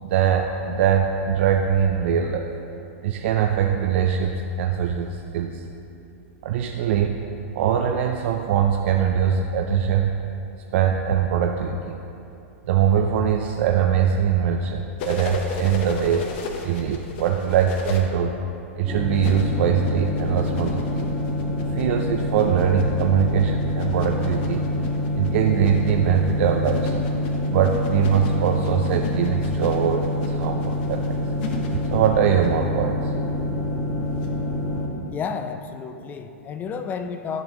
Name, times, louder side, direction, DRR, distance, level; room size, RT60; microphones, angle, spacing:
voice 1, 0.0-2.5 3.0-5.6 6.4-7.1 7.5-10.1 10.7-12.0 12.7-16.2 16.6-18.3 18.8-21.0 21.7-24.6 25.2-26.9 27.5-31.1 31.9-33.0, right 8 dB, 60° right, 3 dB, 0.4 m, -22 dB
sound 1, 15.0-18.0 19.1-32.5 34.2-34.3, left 4 dB, 55° left, 0.8 m, -35 dB
sound 2, 18.9-34.9, left 1 dB, 5° left, 1.5 m, -26 dB
voice 2, 35.1-37.4, left 6 dB, 25° left, 9 dB, 0.4 m, -31 dB
10.5 x 5.3 x 3.0 m, 2.7 s
hypercardioid pair, 115°, 7 cm